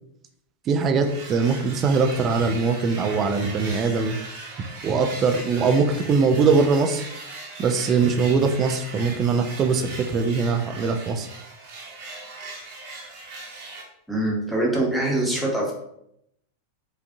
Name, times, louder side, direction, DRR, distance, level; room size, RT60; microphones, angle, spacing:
voice 1, 0.7-4.2 4.8-7.0 7.6-11.3, right 4 dB, 30° right, 6 dB, 0.4 m, -21 dB
sound 1, 1.0-13.8, right 3 dB, 50° right, 0.9 m, -39 dB
voice 2, 14.1-15.7, right 1 dB, ahead, -4 dB, 1.0 m, -24 dB
4.7 x 2.5 x 2.6 m, 0.76 s
figure-of-eight pair, 90°, 0 cm